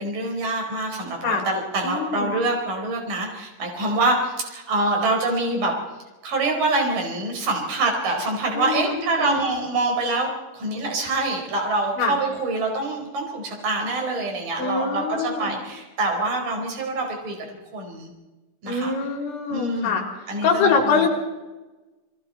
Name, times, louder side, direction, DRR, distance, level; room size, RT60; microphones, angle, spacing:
voice 1, 0.0-5.7 6.2-17.4 17.7-18.1 18.6-18.9 19.5-19.9 20.3-21.1, right 2 dB, 45° right, 2 dB, 6.1 m, -25 dB
voice 2, 1.8-2.3 8.5-9.5 12.0-12.2 14.6-15.5 18.7-20.0 20.4-21.1, left 5 dB, 65° left, 2 dB, 5.9 m, -24 dB
28.5 x 23.0 x 4.3 m, 1.1 s
omnidirectional pair, 5.8 m